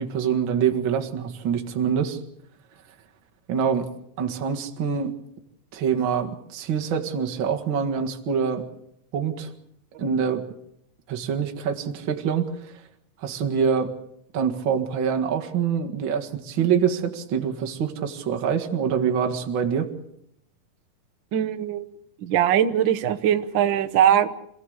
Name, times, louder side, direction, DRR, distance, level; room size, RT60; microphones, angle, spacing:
voice 1, 0.0-2.2 3.5-3.9 4.2-5.1 5.7-8.7 9.1-9.5 10.0-10.4 11.1-12.5 13.2-13.9 14.3-19.9, right 7 dB, 45° right, 5 dB, 2.0 m, -25 dB
voice 2, 21.3-21.9 22.2-24.3, right 10 dB, 90° right, 6 dB, 1.0 m, -21 dB
27.0 x 16.0 x 8.0 m, 0.77 s
omnidirectional pair, 3.8 m